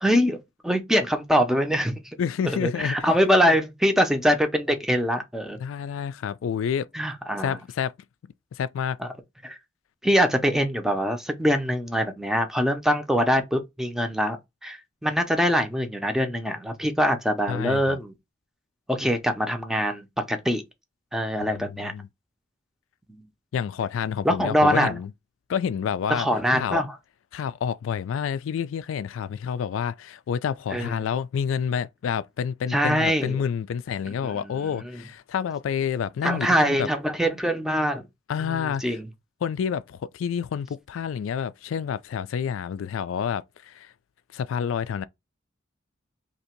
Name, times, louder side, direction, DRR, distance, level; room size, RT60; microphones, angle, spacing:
voice 1, 0.0-2.2 2.4-5.6 6.9-7.6 9.0-9.1 9.4-9.6 10.0-18.1 18.9-20.6 21.1-21.9 23.1-23.2 24.2-25.0 26.1-26.9 30.7-30.9 32.7-33.4 34.3-34.7 36.2-38.0 38.4-39.0, equal, ahead, 0.5 m, -23 dB
voice 2, 2.2-3.1 5.6-6.9 7.4-7.9 8.5-9.0 17.5-18.0 21.4-22.1 23.5-25.1 25.5-26.3 26.5-26.8 27.3-36.9 38.3-39.0 39.4-43.9 44.3-45.1, left 7 dB, 80° left, 0.3 m, -29 dB
2.9 x 2.7 x 4.3 m
head